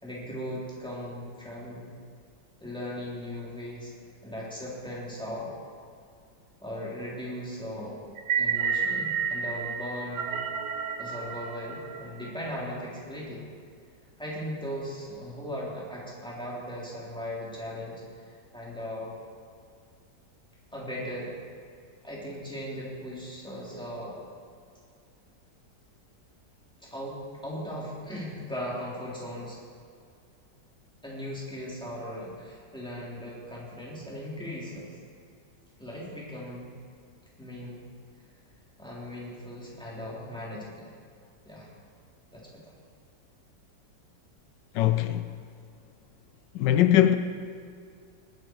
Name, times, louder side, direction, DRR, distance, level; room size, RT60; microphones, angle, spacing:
voice 1, 0.0-1.9 2.6-3.9 4.2-5.5 6.6-8.0 8.4-10.5 11.0-13.4 14.2-19.1 20.7-21.4 22.0-24.2 26.8-29.6 31.0-35.0 35.8-36.7 37.4-37.8 38.8-41.0 41.4-41.7 42.3-42.6, equal, 5° left, 3.5 m, -38 dB
sound 1, 8.2-12.5, right 6 dB, 65° right, 1.2 m, -30 dB
voice 2, 44.7-45.3 46.5-47.2, left 12 dB, 85° left, 1.3 m, -21 dB
19.5 x 10.5 x 4.7 m
omnidirectional pair, 1.9 m